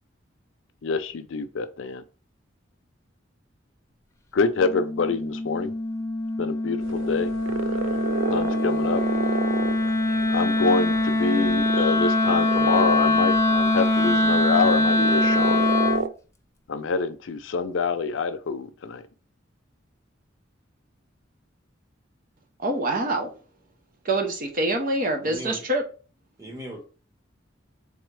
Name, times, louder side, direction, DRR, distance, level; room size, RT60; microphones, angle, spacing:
voice 1, 0.8-2.0 4.3-5.7 6.4-7.3 8.3-9.0 10.3-15.7 16.7-19.0, left 4 dB, 80° left, 0.5 m, -26 dB
Wind instrument woodwind instrument, 4.6-16.1, left 2 dB, 15° left, 0.5 m, -23 dB
sound 1, 6.8-16.1, right 5 dB, 75° right, 0.4 m, -32 dB
voice 2, 22.6-23.3 24.0-25.8, right 2 dB, 45° right, 0.8 m, -25 dB
voice 3, 25.2-25.6 26.4-26.8, right 1 dB, 20° right, 1.3 m, -37 dB
3.8 x 3.6 x 3.2 m
head